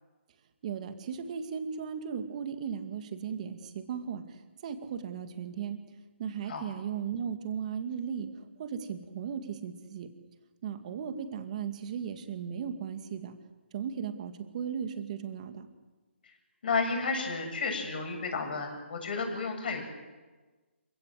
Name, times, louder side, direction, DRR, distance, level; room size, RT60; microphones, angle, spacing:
voice 1, 0.6-5.8 6.2-8.3 8.6-10.1 10.6-13.3 13.7-15.7, right 7 dB, 35° right, 7 dB, 2.3 m, -36 dB
voice 2, 16.6-19.8, left 4 dB, 50° left, 3 dB, 7.7 m, -32 dB
27.5 x 16.5 x 7.8 m, 1.3 s
hypercardioid pair, 160°, 7 cm